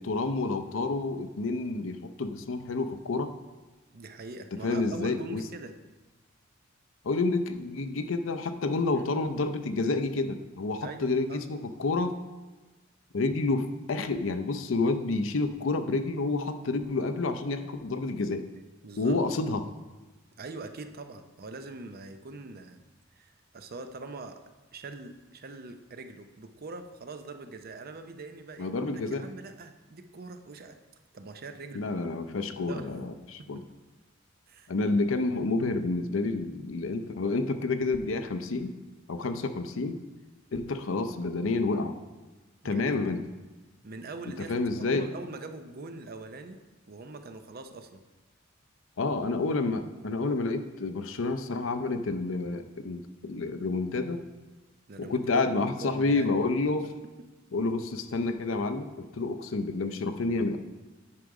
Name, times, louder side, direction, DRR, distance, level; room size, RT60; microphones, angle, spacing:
voice 1, 0.0-3.3 4.6-5.4 7.0-12.2 13.1-18.4 19.0-19.7 28.6-29.3 31.7-33.6 34.7-38.8 39.1-40.0 40.5-42.0 42.6-43.3 44.5-45.1 49.0-54.2 55.0-56.9 57.5-60.6, left 3 dB, 75° left, 9 dB, 0.6 m, -29 dB
voice 2, 3.9-5.8 8.9-9.0 10.8-11.4 18.8-19.2 20.4-22.8 23.1-24.4 24.7-30.8 31.1-31.9 32.6-32.9 33.4-33.7 34.5-34.7 42.6-43.0 43.8-46.6 46.9-48.0 54.9-55.4 55.8-56.3, right 3 dB, 50° right, 8 dB, 0.6 m, -43 dB
9.7 x 5.1 x 4.8 m, 1.2 s
head